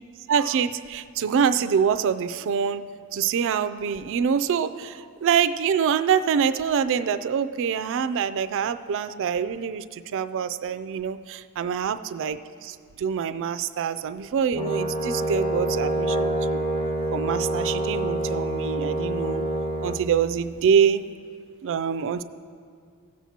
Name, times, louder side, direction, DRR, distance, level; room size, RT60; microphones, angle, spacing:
voice 1, 0.3-2.8 3.1-16.6 17.1-19.4 19.8-21.0 21.6-22.2, right 7 dB, 60° right, 12 dB, 0.3 m, -25 dB
Brass instrument, 14.5-20.0, right 1 dB, 25° left, 0.6 m, -26 dB
17.0 x 7.3 x 2.8 m, 2.2 s
head